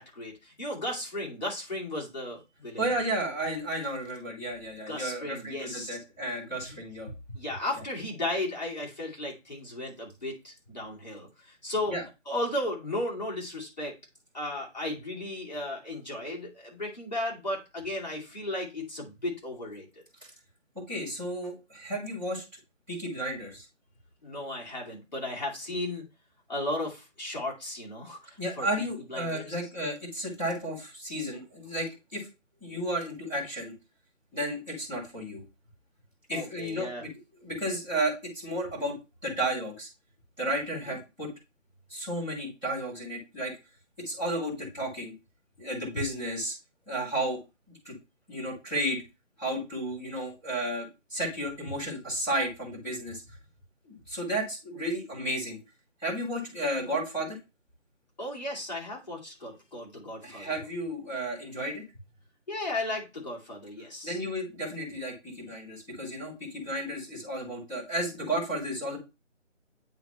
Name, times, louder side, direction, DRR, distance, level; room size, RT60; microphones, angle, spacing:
voice 1, 0.0-2.9 4.9-6.0 6.6-6.8 7.3-12.0 12.3-14.0 14.3-19.9 24.2-26.0 26.5-29.5 36.3-37.1 40.8-41.0 58.2-60.6 62.5-64.2, left 1 dB, 35° left, -4 dB, 2.4 m, -35 dB
voice 2, 2.8-7.1 11.9-12.0 20.7-22.4 22.9-23.6 28.4-32.3 32.6-33.7 34.3-35.4 36.3-37.1 37.4-39.0 39.2-39.9 40.4-41.3 41.9-43.5 44.0-45.1 45.6-46.5 46.9-47.4 47.7-47.9 48.3-49.0 49.4-53.2 53.8-55.6 56.0-57.4 60.2-61.8 64.0-69.0, right 1 dB, 5° right, -21 dB, 2.0 m, -33 dB
9.1 x 3.7 x 3.0 m, 0.26 s
figure-of-eight pair, 180°, 38 cm